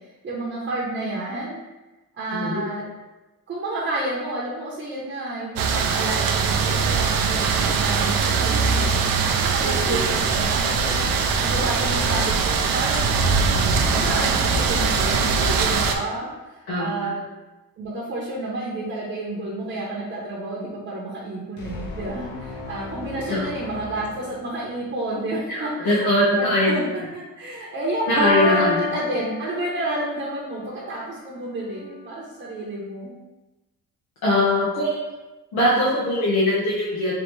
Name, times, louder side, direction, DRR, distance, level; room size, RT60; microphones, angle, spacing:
voice 1, 0.2-1.6 2.2-2.8 3.5-8.9 9.4-11.1 11.4-13.3 13.8-17.2 17.8-26.1 26.4-26.8 27.1-33.2, right 2 dB, 35° right, -6 dB, 0.8 m, -30 dB
voice 2, 2.3-2.6 9.6-10.0 16.7-17.1 23.3-23.5 25.5-26.7 28.1-28.8 34.2-35.1 35.5-37.2, left 1 dB, 85° left, -7 dB, 1.1 m, -22 dB
sound 1, 5.6-16.0, right 5 dB, 70° right, 0.5 m, -21 dB
sound 2, 21.6-25.0, left 3 dB, 55° left, 0.8 m, -37 dB
Piano, 28.2-30.1, left 4 dB, 5° right, 0.8 m, -25 dB
4.0 x 2.8 x 3.1 m, 1.1 s
cardioid pair, 140°, 36 cm